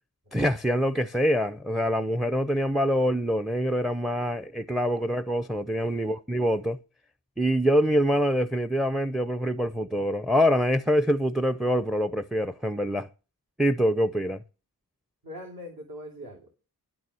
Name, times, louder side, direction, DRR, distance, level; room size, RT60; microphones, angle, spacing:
voice 1, 0.3-6.8 7.4-13.1 13.6-14.4, equal, ahead, 0.5 m, -25 dB
voice 2, 5.8-6.1 15.2-16.6, equal, 60° right, 3.0 m, -42 dB
11.0 x 6.9 x 6.3 m
wide cardioid pair, 105°, 40 cm